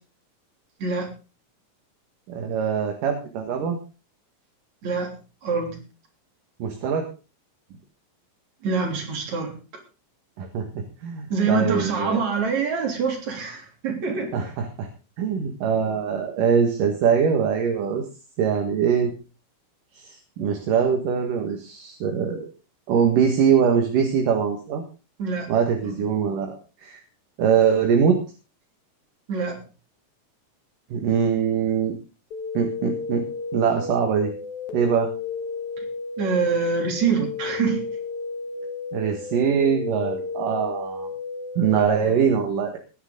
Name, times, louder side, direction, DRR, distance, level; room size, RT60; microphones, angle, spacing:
voice 1, 2.3-3.8 6.6-7.1 10.4-12.2 14.3-14.9 15.2-18.0 18.4-19.1 19.9-22.5 22.9-24.8 25.5-26.5 26.8-27.0 27.4-28.2 30.9-31.9 32.5-33.2 33.5-34.3 34.7-35.1 38.9-41.1 41.6-42.8, right 7 dB, 70° right, 4 dB, 3.3 m, -22 dB
voice 2, 4.8-5.1 5.4-5.8 8.6-9.5 11.3-14.3 25.2-25.5 25.8-26.0 29.3-29.6 35.8-35.9 36.2-37.8 42.0-42.2, right 5 dB, 55° right, 3 dB, 4.5 m, -25 dB
sound 1, 32.3-41.9, left 5 dB, 60° left, 3.3 m, -33 dB
19.5 x 10.0 x 3.9 m, 0.33 s
omnidirectional pair, 4.1 m